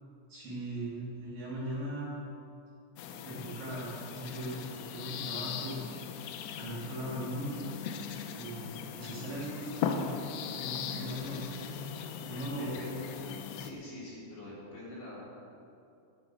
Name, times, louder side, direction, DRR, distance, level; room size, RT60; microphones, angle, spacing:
voice 1, 0.3-2.2 3.2-5.8 6.5-7.6 8.4-10.1 10.5-11.5 12.2-12.7, right 1 dB, 50° right, -7 dB, 4.5 m, -39 dB
sound 1, 3.0-13.7, left 7 dB, 80° left, 2.7 m, -39 dB
voice 2, 12.6-15.3, left 1 dB, 55° left, -8 dB, 6.2 m, -44 dB
12.0 x 12.0 x 6.4 m, 2.6 s
omnidirectional pair, 5.6 m